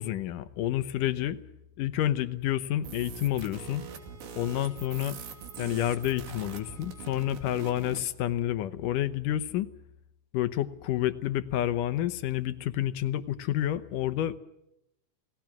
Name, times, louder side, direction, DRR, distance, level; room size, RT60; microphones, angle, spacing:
voice 1, 0.0-1.4 1.8-3.8 4.3-5.2 5.6-9.7 10.3-14.4, left 12 dB, 70° left, 12 dB, 2.3 m, -29 dB
sound 1, 2.8-8.1, right 7 dB, 80° right, 4.4 m, -43 dB
sound 2, 3.7-7.9, right 3 dB, 40° right, 1.2 m, -55 dB
29.0 x 18.5 x 6.0 m, 0.86 s
omnidirectional pair, 4.3 m